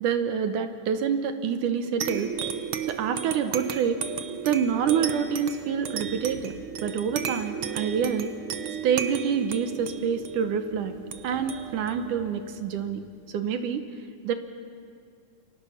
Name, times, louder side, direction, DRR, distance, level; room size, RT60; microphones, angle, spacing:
voice 1, 0.0-2.3 2.9-4.0 4.4-6.5 6.8-8.3 8.8-11.0 11.2-13.0 13.3-13.8 14.2-14.3, right 7 dB, 70° right, 8 dB, 2.4 m, -27 dB
sound 1, 2.0-13.1, right 8 dB, 90° right, 1.1 m, -34 dB
30.0 x 24.5 x 5.8 m, 2.2 s
omnidirectional pair, 3.9 m